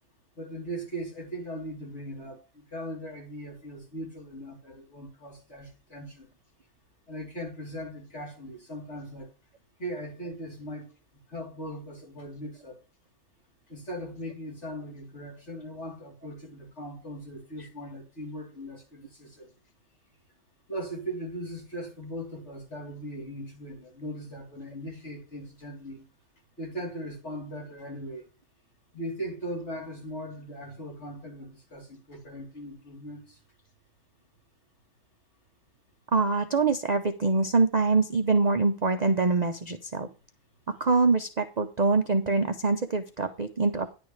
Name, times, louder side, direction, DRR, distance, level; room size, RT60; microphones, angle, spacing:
voice 1, 0.4-6.3 7.1-9.3 9.8-10.9 11.3-12.8 13.7-19.5 20.7-26.0 26.6-28.3 28.9-33.4, equal, 50° left, 3.8 m, -39 dB
voice 2, 36.1-40.1 40.8-43.9, right 3 dB, 45° right, 0.6 m, -24 dB
10.5 x 8.7 x 3.3 m
omnidirectional pair, 1.4 m